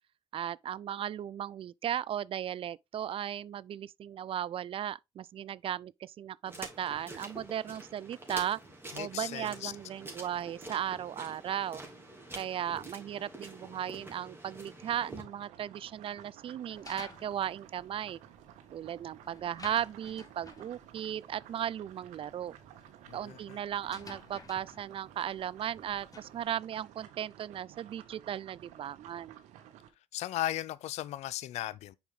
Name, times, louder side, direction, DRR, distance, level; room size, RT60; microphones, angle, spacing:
voice 1, 0.3-8.6 9.0-11.8 12.4-18.2 18.7-22.5 23.1-29.4, right 10 dB, 50° right, 0.4 m, -36 dB
sound 1, 6.5-15.2, right 1 dB, 20° right, 2.9 m, -47 dB
voice 2, 8.9-9.7 23.1-23.6 30.1-31.9, left 14 dB, 70° left, 0.5 m, -36 dB
sound 2, 15.2-29.9, right 11 dB, 80° right, 1.1 m, -54 dB
sound 3, 16.7-26.4, left 3 dB, 30° left, 1.9 m, -53 dB
7.0 x 4.7 x 3.7 m
supercardioid pair, 60°, 12 cm